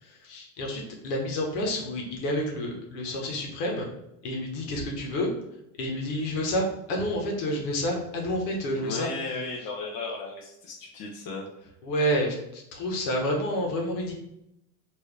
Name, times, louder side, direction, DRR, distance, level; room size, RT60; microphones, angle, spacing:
voice 1, 0.0-3.9 4.2-5.3 5.8-9.1 11.8-14.1, equal, 80° left, 0 dB, 1.4 m, -29 dB
voice 2, 8.8-11.5, left 3 dB, 45° left, -3 dB, 1.0 m, -35 dB
4.5 x 2.8 x 3.4 m, 0.83 s
supercardioid pair, 110°, 47 cm